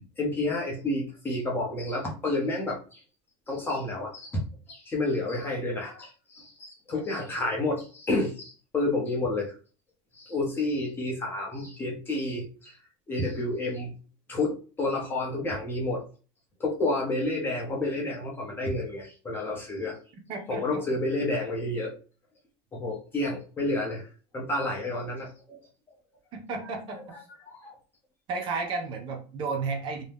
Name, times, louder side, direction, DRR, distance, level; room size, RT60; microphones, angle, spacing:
voice 1, 0.2-3.0 3.5-4.4 4.7-9.5 10.1-12.8 13.1-13.9 14.3-16.0 16.6-20.0 20.5-21.9 22.7-24.0 24.3-25.7 26.6-27.2 27.5-27.8, left 2 dB, 15° left, -2 dB, 0.8 m, -30 dB
voice 2, 20.3-20.8 26.3-27.0 28.3-30.0, right 4 dB, 40° right, 3 dB, 0.6 m, -32 dB
2.7 x 2.2 x 3.4 m, 0.38 s
cardioid pair, 155°, 13 cm